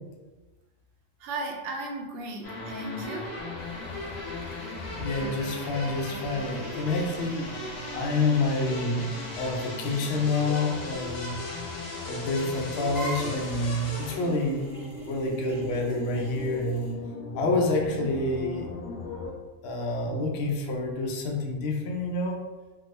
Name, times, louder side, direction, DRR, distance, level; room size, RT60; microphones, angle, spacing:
voice 1, 1.2-3.3, right 2 dB, 70° right, 0 dB, 0.9 m, -35 dB
sound 1, 2.4-19.3, left 2 dB, 80° left, 1.2 m, -37 dB
sound 2, 3.4-16.9, right 1 dB, 20° right, 0.8 m, -47 dB
voice 2, 5.0-7.5 7.9-9.1 9.4-11.4 12.1-14.8 15.1-16.8 17.3-18.7 19.6-22.4, left 2 dB, 60° left, 0 dB, 0.7 m, -28 dB
3.4 x 2.0 x 3.1 m, 1.2 s
omnidirectional pair, 1.4 m